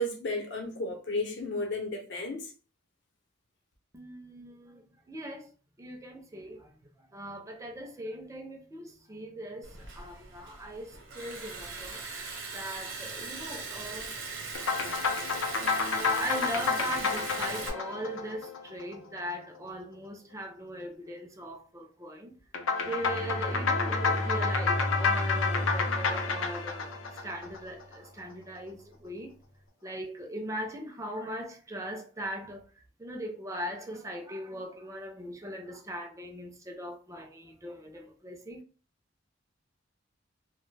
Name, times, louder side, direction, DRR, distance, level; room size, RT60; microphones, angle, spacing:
voice 1, 0.0-2.5, left 1 dB, 65° left, 0.7 m, -33 dB
voice 2, 3.9-5.5 5.8-12.0 12.5-14.2 14.5-14.8 15.4-22.4 22.8-29.3 29.8-32.7 33.0-38.6, right 1 dB, 15° right, 0.4 m, -40 dB
Liquid, 9.6-17.7, right 4 dB, 80° right, 0.7 m, -40 dB
sound 1, 14.5-19.2 22.5-28.0, left 5 dB, 90° left, 0.5 m, -30 dB
Bowed string instrument, 23.0-27.3, left 1 dB, 30° left, 0.6 m, -34 dB
2.2 x 2.1 x 3.2 m
head